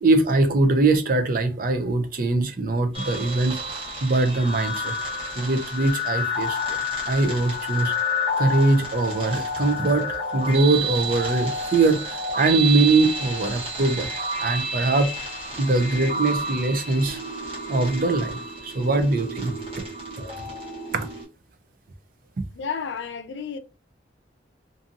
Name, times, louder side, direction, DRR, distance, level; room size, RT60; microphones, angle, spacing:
voice 1, 0.0-5.0 5.4-6.8 7.1-7.9 8.4-14.1 14.4-15.1 15.6-17.2 17.7-19.5 20.9-21.1, right 2 dB, 50° right, 0.5 m, -22 dB
sound 1, 2.9-21.2, left 1 dB, 30° right, 1.0 m, -30 dB
voice 2, 22.5-23.6, left 6 dB, 75° left, 0.4 m, -31 dB
2.7 x 2.6 x 2.5 m
head